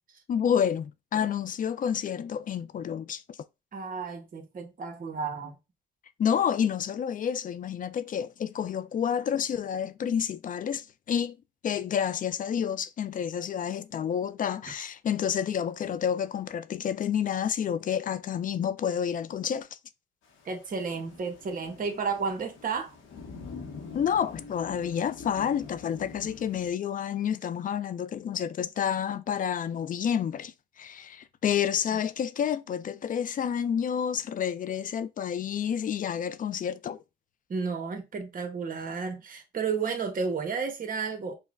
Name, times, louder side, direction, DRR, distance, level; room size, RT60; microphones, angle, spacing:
voice 1, 0.3-3.4 6.2-11.4 11.6-19.7 23.9-37.0, left 8 dB, 45° left, 0.4 m, -29 dB
voice 2, 3.7-5.5 20.4-22.9 37.5-41.4, right 5 dB, 45° right, 1.0 m, -32 dB
Thunder / Rain, 20.2-26.7, left 4 dB, 75° left, 0.9 m, -45 dB
5.5 x 2.1 x 2.4 m
cardioid pair, 90°, 20 cm